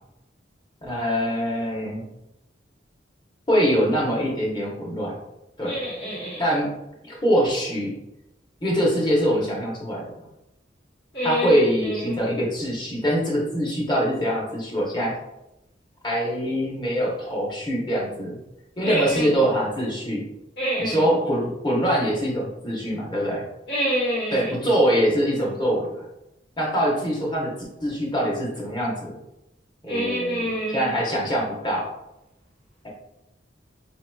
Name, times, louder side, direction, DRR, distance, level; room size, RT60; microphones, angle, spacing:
voice 1, 0.8-2.1 3.5-5.2 5.6-5.7 6.4-6.7 7.0-7.9 8.6-10.0 11.2-15.1 16.0-18.4 18.8-20.2 20.8-23.4 24.3-26.1 26.6-27.5 27.8-29.1 29.8-31.9 32.8-32.9, equal, 25° left, -3 dB, 0.8 m, -23 dB
voice 2, 5.7-6.4 11.1-11.6 12.0-12.2 18.8-19.2 20.6-21.0 23.7-24.4 29.9-30.9, equal, 60° left, -8 dB, 1.4 m, -26 dB
4.6 x 2.8 x 2.2 m, 0.89 s
head